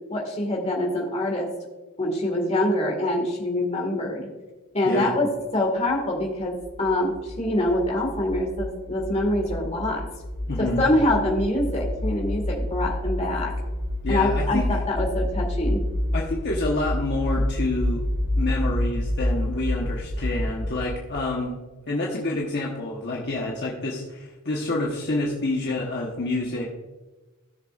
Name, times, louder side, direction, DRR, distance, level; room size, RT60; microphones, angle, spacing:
voice 1, 0.1-1.5 2.0-4.3 4.7-10.1 10.6-13.5 14.1-15.8, left 1 dB, 30° left, -1 dB, 1.9 m, -25 dB
sound 1, 6.0-21.3, left 1 dB, 75° right, 2.2 m, -28 dB
voice 2, 10.5-10.9 14.0-14.6 16.1-18.0 18.3-21.6 21.9-26.6, left 2 dB, 50° left, -3 dB, 1.2 m, -28 dB
16.0 x 6.8 x 2.5 m, 1.2 s
head